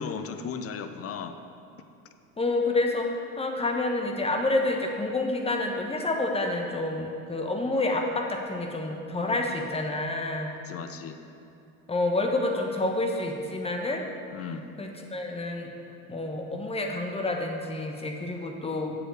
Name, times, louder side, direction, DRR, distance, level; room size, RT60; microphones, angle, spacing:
voice 1, 0.0-1.3 9.2-9.4 10.6-11.2 14.3-14.6, left 6 dB, 30° left, 8 dB, 0.8 m, -36 dB
voice 2, 2.4-3.1 3.4-10.5 11.9-14.1 14.8-15.7 16.1-19.0, left 2 dB, 10° left, 2 dB, 1.2 m, -28 dB
7.8 x 6.9 x 6.5 m, 2.7 s
hypercardioid pair, 75°, 47 cm